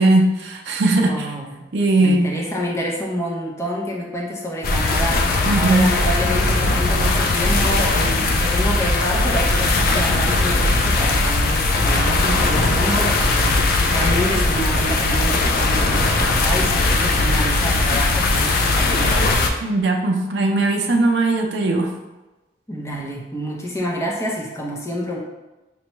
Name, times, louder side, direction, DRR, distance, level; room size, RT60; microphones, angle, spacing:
voice 1, 0.0-1.3 1.7-2.3 5.4-5.9 19.6-21.9, right 2 dB, 75° right, 1 dB, 0.5 m, -18 dB
voice 2, 0.9-1.5 2.0-19.2 22.7-25.2, equal, 15° left, -3 dB, 0.7 m, -27 dB
sound 1, 4.6-19.5, left 2 dB, 55° left, 0.4 m, -19 dB
5.3 x 2.2 x 3.0 m, 1.1 s
head